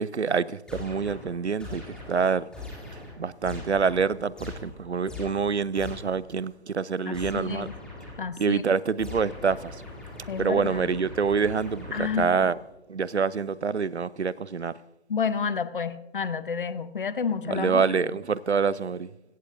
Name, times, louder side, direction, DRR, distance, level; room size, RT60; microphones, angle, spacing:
voice 1, 0.0-2.5 3.2-7.7 8.4-9.7 10.4-12.6 12.9-14.7 17.4-19.1, right 5 dB, 85° right, 0.6 m, -26 dB
sound 1, 0.7-6.3 7.1-8.4 9.0-12.7, left 2 dB, 5° left, 2.5 m, -42 dB
voice 2, 7.1-7.8 8.2-8.6 10.3-10.7 11.9-12.3 15.1-17.8, left 6 dB, 50° left, 0.8 m, -30 dB
16.0 x 15.5 x 2.6 m
figure-of-eight pair, 140°, 33 cm